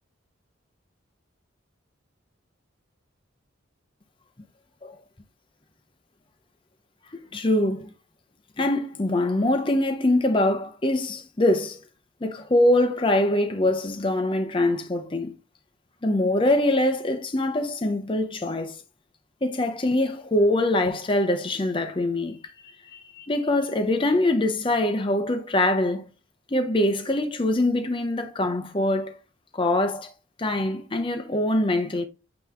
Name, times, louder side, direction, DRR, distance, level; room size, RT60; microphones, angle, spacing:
voice 1, 7.3-7.9 8.6-11.8 12.2-15.3 16.0-18.8 19.4-22.4 22.9-26.0 26.5-29.2 29.5-30.1 30.4-32.1, left 1 dB, 25° left, 0.7 m, -23 dB
9.0 x 3.0 x 3.7 m
head